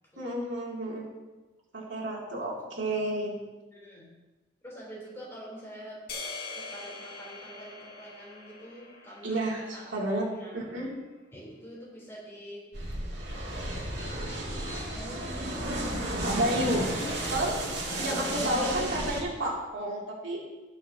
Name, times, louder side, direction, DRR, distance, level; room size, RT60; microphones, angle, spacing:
voice 1, 0.2-1.1 1.7-3.4 9.2-10.9 16.2-16.9 17.3-17.6 18.0-20.5, right 1 dB, 90° right, -4 dB, 2.8 m, -31 dB
voice 2, 3.7-4.1 4.6-6.0 6.5-9.9 10.3-10.6 11.3-12.6 13.3-14.2 14.7-15.5 17.0-17.5 17.9-18.8, equal, 15° left, -6 dB, 3.7 m, -45 dB
sound 1, 6.1-10.4, left 3 dB, 55° left, 2.0 m, -43 dB
sound 2, 12.7-19.2, right 1 dB, 65° right, 2.4 m, -33 dB
18.5 x 6.4 x 2.9 m, 1.2 s
head